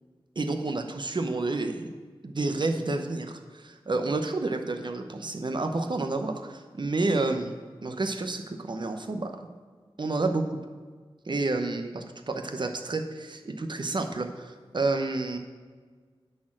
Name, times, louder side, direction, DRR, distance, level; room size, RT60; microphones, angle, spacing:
voice 1, 0.4-1.9 2.2-7.6 7.8-9.4 10.0-10.5 11.3-15.4, right 3 dB, 50° right, 6 dB, 0.8 m, -30 dB
10.0 x 4.3 x 7.5 m, 1.5 s
wide cardioid pair, 75°, 10 cm